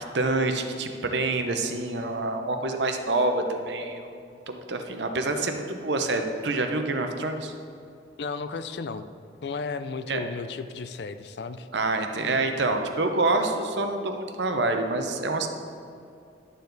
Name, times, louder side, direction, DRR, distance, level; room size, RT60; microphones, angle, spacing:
voice 1, 0.0-7.5 10.1-10.2 11.7-15.5, right 2 dB, 70° right, 5 dB, 0.8 m, -27 dB
voice 2, 8.2-9.1 9.4-11.7, left 4 dB, 60° left, 11 dB, 0.4 m, -34 dB
11.5 x 6.9 x 4.0 m, 2.5 s
head